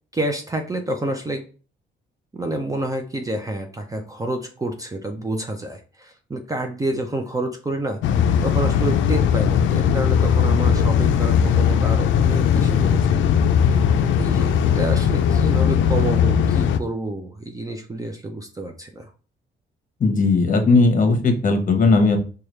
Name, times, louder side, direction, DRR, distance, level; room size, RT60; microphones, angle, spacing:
voice 1, 0.1-1.4 2.3-8.0 8.4-13.1 14.0-19.1, right 1 dB, 15° right, 4 dB, 0.5 m, -28 dB
sound 1, 8.0-16.8, left 7 dB, 75° left, 0.4 m, -18 dB
voice 2, 20.0-22.2, left 3 dB, 40° left, 5 dB, 0.9 m, -17 dB
4.8 x 2.3 x 3.1 m, 0.37 s
cardioid pair, 90°, 20 cm